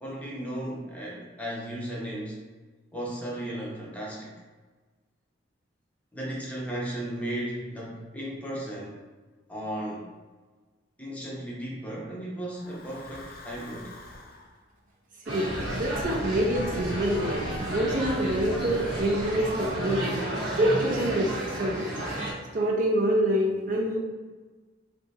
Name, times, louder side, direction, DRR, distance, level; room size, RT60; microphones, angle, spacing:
voice 1, 0.0-2.4 2.9-4.3 6.1-9.0 9.5-10.1 11.0-13.9, right 1 dB, 10° left, -5 dB, 0.6 m, -35 dB
Breathing / Wind, 12.6-14.5 15.4-20.8, left 1 dB, 50° left, 0.4 m, -41 dB
voice 2, 15.3-17.4 17.7-20.2 20.6-21.3 21.6-21.9 22.5-24.0, right 1 dB, 45° right, -2 dB, 0.5 m, -26 dB
sound 1, 15.3-22.3, right 1 dB, 75° right, 1.0 m, -32 dB
3.3 x 2.7 x 2.7 m, 1.3 s
head